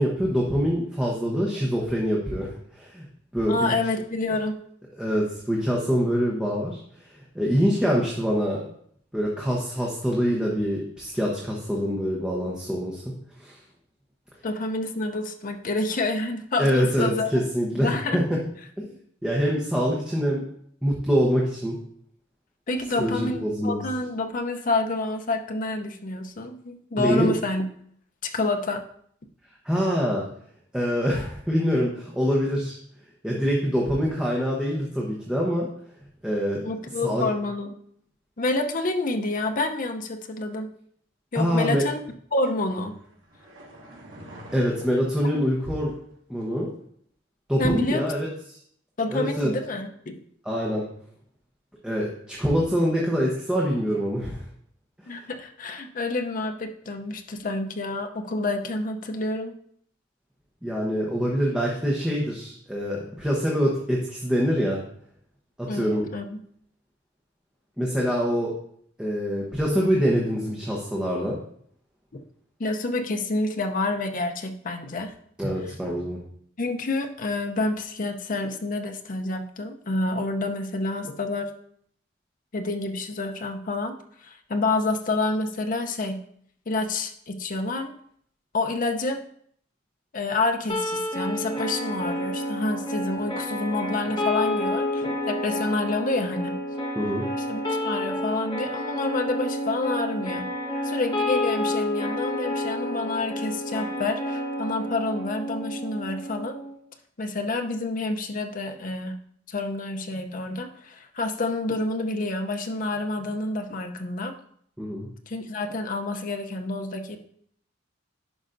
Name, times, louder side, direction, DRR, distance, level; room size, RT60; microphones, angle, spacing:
voice 1, 0.0-2.5 2.7-3.0 3.3-3.7 5.0-8.7 9.1-13.0 13.4-13.6 16.6-18.4 18.8-18.9 19.2-20.5 20.8-21.8 23.0-23.8 27.0-27.3 29.6-30.2 30.7-32.8 33.2-35.7 36.2-36.6 37.0-37.3 41.3-41.8 44.5-45.9 46.3-46.7 47.5-48.3 49.1-49.5 50.4-50.8 51.8-54.4 60.6-64.8 65.6-66.1 67.8-68.5 69.0-71.4 75.4-76.2 97.0-97.2 114.8-115.1, equal, 5° right, -4 dB, 0.9 m, -25 dB
voice 2, 3.5-4.6 14.4-17.3 17.6-18.2 22.7-27.7 28.2-28.8 36.6-37.7 38.4-40.7 41.3-42.0 42.3-43.0 47.6-48.1 49.0-50.2 55.0-59.6 65.7-66.4 71.2-71.3 72.6-75.1 76.6-81.5 82.5-86.2 86.7-87.9 88.5-89.2 90.1-96.6 97.5-100.5 100.8-106.6 107.2-109.2 109.5-114.3 115.3-117.2, left 2 dB, 45° left, 5 dB, 0.6 m, -28 dB
sound 1, 42.4-46.1 46.4-46.5, right 1 dB, 75° right, 2.4 m, -47 dB
sound 2, 90.7-106.7, left 1 dB, 25° left, 1.5 m, -29 dB
11.0 x 5.0 x 2.6 m, 0.64 s
head